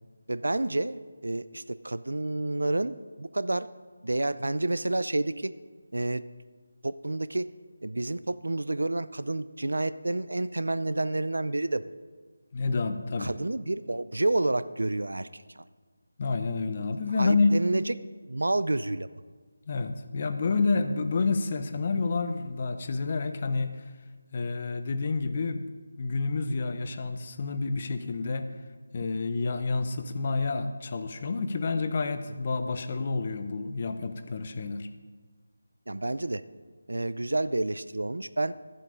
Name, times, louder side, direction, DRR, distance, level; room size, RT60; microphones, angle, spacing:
voice 1, 0.3-3.7 4.0-5.5 5.9-6.2 6.8-7.5 7.8-11.9 13.2-15.3 15.6-15.7 17.2-17.9 18.3-19.1 35.9-36.4 36.9-38.5, right 2 dB, 90° right, 15 dB, 0.5 m, -29 dB
voice 2, 12.5-13.3 16.2-17.5 19.7-23.7 24.3-25.6 26.0-28.5 28.9-34.9, left 4 dB, 35° left, 9 dB, 0.6 m, -29 dB
12.0 x 7.7 x 5.0 m, 1.4 s
figure-of-eight pair, 170°, 0 cm